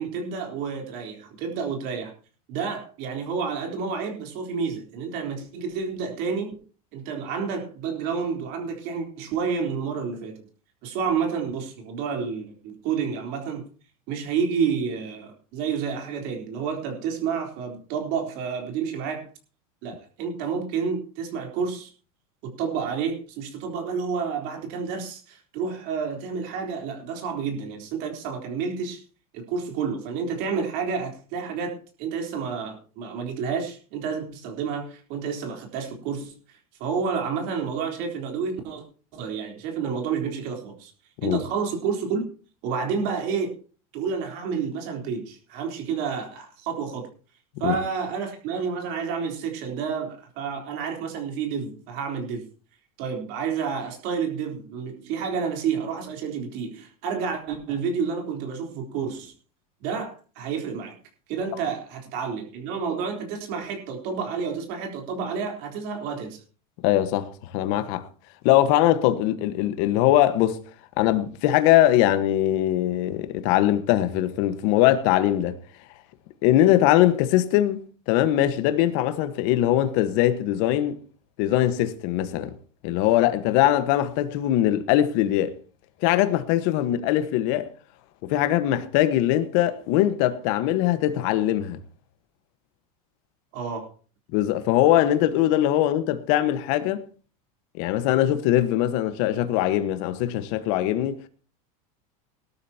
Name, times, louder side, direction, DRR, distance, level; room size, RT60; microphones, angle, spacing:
voice 1, 0.0-2.1 2.5-6.6 6.9-10.5 10.8-13.6 14.1-19.3 19.8-21.9 22.4-29.0 29.3-38.8 39.1-40.9 41.2-42.2 42.6-43.5 43.9-47.1 47.6-52.5 53.0-59.3 59.8-61.0 61.3-66.4 93.5-93.9, right 6 dB, 60° right, 3.8 m, -30 dB
voice 2, 66.8-68.1 68.4-70.6 71.0-75.6 76.4-81.0 81.4-82.5 82.8-85.6 86.0-87.7 88.2-91.8 94.3-97.0 97.8-101.3, left 13 dB, 60° left, 1.4 m, -21 dB
19.0 x 12.5 x 2.9 m
supercardioid pair, 125°, 19 cm